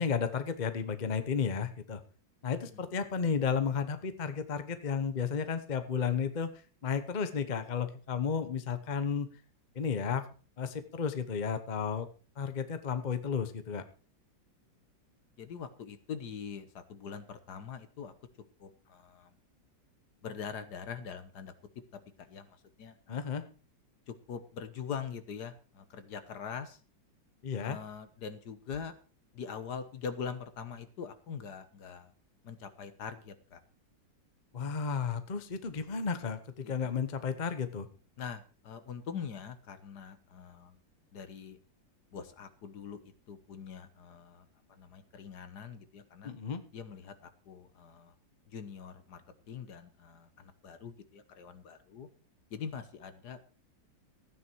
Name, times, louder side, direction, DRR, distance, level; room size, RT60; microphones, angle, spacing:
voice 1, 0.0-2.0 2.4-6.5 6.8-9.3 9.7-10.3 10.6-12.1 12.4-13.8 23.1-23.4 27.4-27.8 34.5-37.9 46.2-46.6, left 6 dB, 35° left, 10 dB, 0.8 m, -33 dB
voice 2, 15.4-18.1 18.6-19.3 20.2-21.5 21.9-23.2 24.1-26.8 27.6-28.9 29.3-32.1 32.4-33.6 36.6-36.9 38.2-40.8 41.1-41.6 42.1-43.0 43.3-44.5 44.8-46.3 46.7-48.1 48.5-49.2 49.5-52.1 52.5-53.4, left 6 dB, 60° left, 11 dB, 1.6 m, -43 dB
14.5 x 9.5 x 4.6 m, 0.37 s
omnidirectional pair, 2.0 m